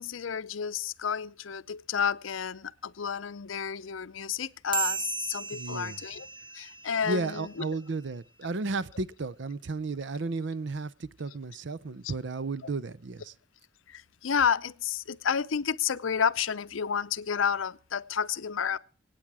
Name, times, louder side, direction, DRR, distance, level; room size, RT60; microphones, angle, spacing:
voice 1, 0.0-6.3 6.5-7.5 12.0-12.1 13.9-18.8, left 7 dB, 80° left, 0.6 m, -30 dB
sound 1, 4.7-7.6, right 7 dB, 25° right, 1.0 m, -36 dB
voice 2, 5.5-6.0 7.0-13.3, right 3 dB, 60° right, 0.6 m, -33 dB
25.5 x 8.9 x 4.8 m
head